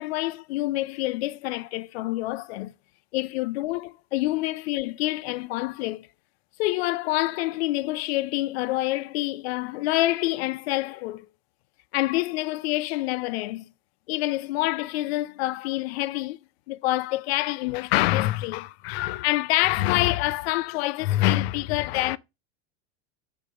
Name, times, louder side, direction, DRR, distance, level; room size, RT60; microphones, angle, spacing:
voice 1, 0.0-2.7 3.1-6.1 6.6-11.3 11.9-13.7 14.1-16.4 16.7-22.2, left 17 dB, 65° left, 0.5 m, -26 dB
6.8 x 2.9 x 4.9 m
supercardioid pair, 165°, 34 cm